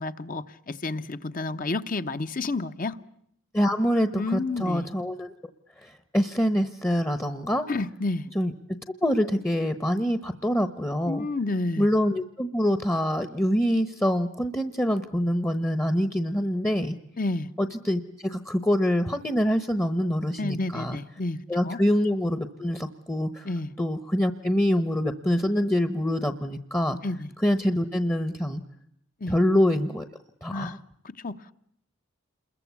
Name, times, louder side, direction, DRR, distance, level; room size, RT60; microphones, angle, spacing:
voice 1, 0.0-3.0 4.2-4.9 7.7-8.2 11.1-11.9 17.2-17.5 20.4-21.4 21.6-21.8 23.4-23.7 27.0-27.3 29.2-29.4 30.5-30.8 31.0-31.5, left 2 dB, 40° left, 1.0 m, -30 dB
voice 2, 3.5-5.3 5.8-7.7 8.3-8.5 9.0-11.3 11.8-17.0 17.6-21.0 21.5-23.5 23.8-27.0 27.4-28.6 29.3-30.1 30.4-30.7, equal, 10° left, 1.0 m, -25 dB
28.0 x 22.0 x 8.3 m
head